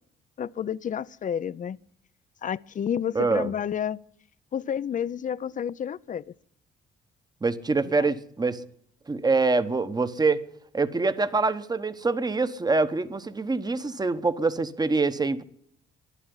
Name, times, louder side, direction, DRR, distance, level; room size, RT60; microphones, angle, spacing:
voice 1, 0.4-1.8 2.4-4.0 4.5-6.2 7.9-8.1, left 8 dB, 40° left, 0.5 m, -30 dB
voice 2, 3.1-3.5 7.4-8.6 9.1-10.4 10.7-15.4, right 3 dB, 20° right, 1.0 m, -25 dB
11.5 x 11.0 x 9.8 m
cardioid pair, 90°, 20 cm